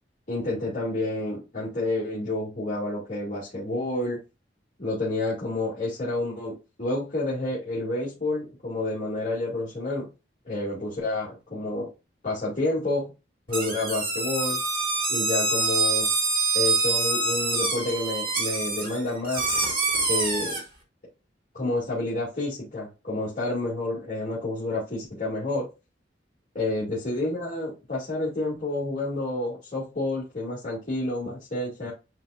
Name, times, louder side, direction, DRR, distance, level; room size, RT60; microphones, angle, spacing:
voice 1, 0.3-4.2 4.8-10.1 10.4-11.9 12.2-13.1 13.5-14.6 15.1-16.1 16.5-19.5 20.1-20.6 21.5-25.7 26.5-31.9, left 2 dB, 40° left, -8 dB, 2.5 m, -29 dB
sound 1, 13.5-20.6, right 3 dB, 50° right, 2.5 m, -26 dB
9.8 x 3.8 x 2.5 m, 0.28 s
head